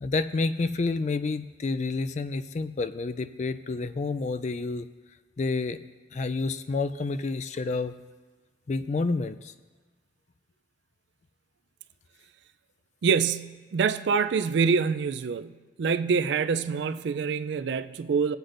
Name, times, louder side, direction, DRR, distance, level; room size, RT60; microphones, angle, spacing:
voice 1, 0.0-4.9 5.4-5.8 6.1-7.9 8.7-9.5, left 3 dB, 35° left, 0.3 m, -29 dB
voice 2, 13.0-18.4, right 5 dB, 65° right, 0.3 m, -26 dB
20.5 x 8.0 x 2.5 m
head